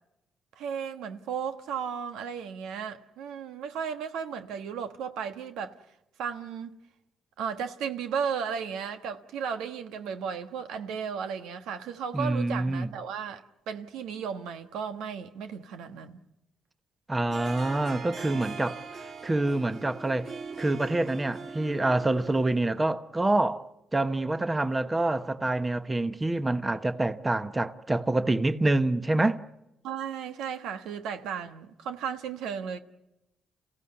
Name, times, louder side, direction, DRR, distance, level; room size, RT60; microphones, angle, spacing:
voice 1, 0.6-5.7 6.2-6.8 7.4-16.2 29.8-32.8, right 7 dB, 90° right, 1.3 m, -35 dB
voice 2, 12.1-12.9 17.1-18.8 19.2-20.3 20.6-29.4, right 2 dB, 20° right, 1.0 m, -26 dB
Harp, 17.3-22.8, right 5 dB, 55° right, 2.6 m, -41 dB
29.0 x 16.0 x 9.7 m
cardioid pair, 90°, 0 cm